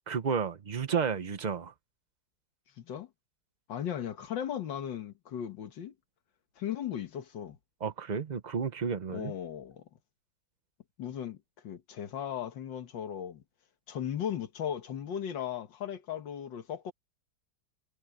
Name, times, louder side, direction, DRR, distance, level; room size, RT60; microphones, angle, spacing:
voice 1, 0.1-1.7 7.8-9.3, right 6 dB, 70° right, 0.4 m, -32 dB
voice 2, 2.8-3.1 3.7-5.9 6.6-7.6 9.1-9.8 11.0-11.4 11.6-13.4 13.9-16.9, left 9 dB, 75° left, 2.0 m, -37 dB
omnidirectional pair, 2.0 m